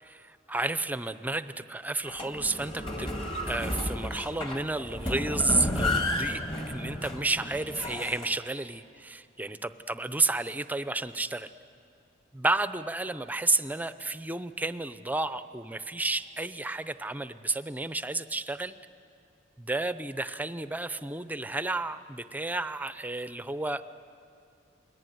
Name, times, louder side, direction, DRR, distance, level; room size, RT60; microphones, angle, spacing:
voice 1, 0.0-3.1 3.5-11.5 12.3-18.8 19.6-23.8, right 2 dB, 10° right, 12 dB, 0.6 m, -31 dB
sound 1, 2.1-8.3, left 1 dB, 30° left, 2.1 m, -32 dB
29.0 x 22.0 x 9.4 m, 2.5 s
head